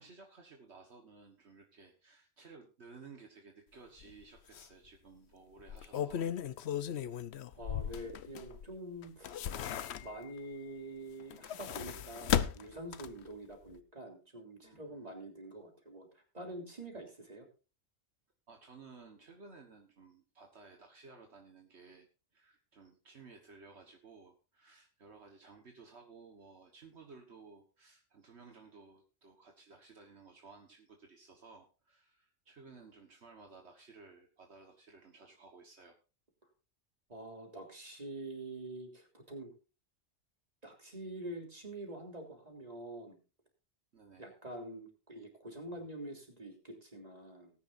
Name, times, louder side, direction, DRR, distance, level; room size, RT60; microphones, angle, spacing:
voice 1, 0.0-6.3 14.6-15.1 18.5-22.1 22.3-36.0 43.9-44.3, right 4 dB, 70° right, 3 dB, 1.7 m, -56 dB
sound 1, 4.0-4.1 4.5-4.7 5.6-8.7 9.0-10.4 11.2-13.3 13.7-13.8, left 9 dB, 70° left, 1.0 m, -36 dB
voice 2, 7.5-9.5 10.0-17.5 37.1-39.5 40.6-43.2 44.2-47.5, right 1 dB, 35° right, 2 dB, 3.4 m, -46 dB
19.0 x 10.0 x 2.6 m, 0.33 s
omnidirectional pair, 1.2 m